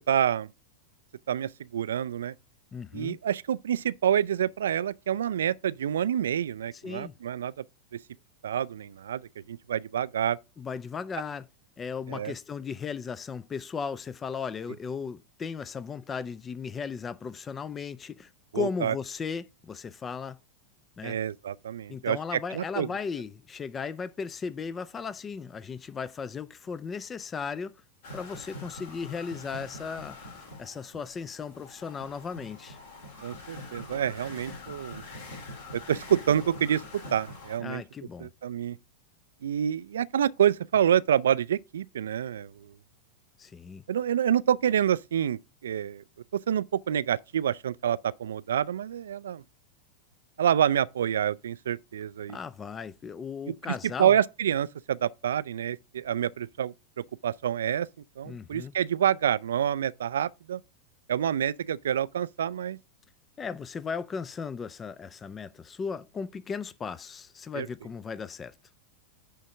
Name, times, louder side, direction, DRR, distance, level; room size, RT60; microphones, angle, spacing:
voice 1, 0.1-0.5 1.3-2.3 2.9-7.6 8.4-10.4 12.1-12.3 18.5-18.9 21.0-22.9 33.2-35.0 35.7-36.8 37.1-37.8 38.2-38.8 39.4-42.7 43.9-46.0 46.5-49.4 50.4-52.4 53.5-53.7 54.0-56.7 57.2-57.9 58.2-60.6 61.1-62.8 67.6-67.7, right 9 dB, 65° right, 0.3 m, -27 dB
voice 2, 2.7-3.2 6.8-7.2 10.6-11.4 11.8-20.4 21.0-21.2 21.9-27.7 28.1-32.8 37.6-38.3 43.4-43.8 52.3-54.1 58.2-58.7 63.4-68.5, left 6 dB, 20° left, 0.4 m, -36 dB
sound 1, 28.0-37.6, left 2 dB, 55° left, 3.1 m, -44 dB
10.0 x 3.6 x 5.2 m
figure-of-eight pair, 90°, 0 cm